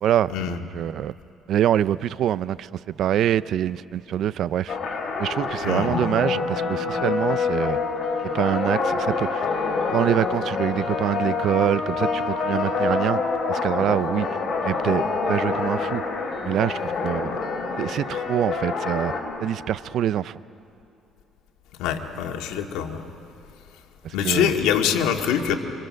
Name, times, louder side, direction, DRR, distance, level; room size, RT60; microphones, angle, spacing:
voice 1, 0.0-1.1 1.5-4.8 5.2-7.8 8.2-9.5 9.9-13.2 13.5-14.3 14.6-16.0 16.4-17.4 17.8-19.1 19.4-20.4 24.0-24.5, right 11 dB, 60° right, 0.5 m, -25 dB
sound 1, 4.7-19.2, left 4 dB, 45° left, 5.2 m, -26 dB
voice 2, 5.6-6.0 21.8-23.0 24.1-25.6, left 9 dB, 90° left, 2.0 m, -24 dB
28.5 x 26.0 x 6.4 m
cardioid pair, 115°, 0 cm